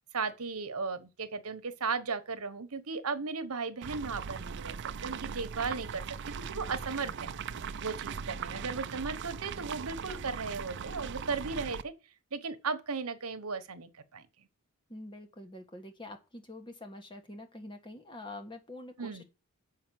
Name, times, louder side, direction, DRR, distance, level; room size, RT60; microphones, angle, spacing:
voice 1, 0.1-4.8 5.0-7.3 7.8-11.9 12.3-14.3 19.0-19.2, right 4 dB, 80° right, 1.1 m, -36 dB
sound 1, 3.8-11.8, right 6 dB, 55° right, 0.5 m, -39 dB
voice 2, 14.9-19.2, left 1 dB, 20° left, 1.4 m, -46 dB
7.3 x 5.8 x 7.5 m
head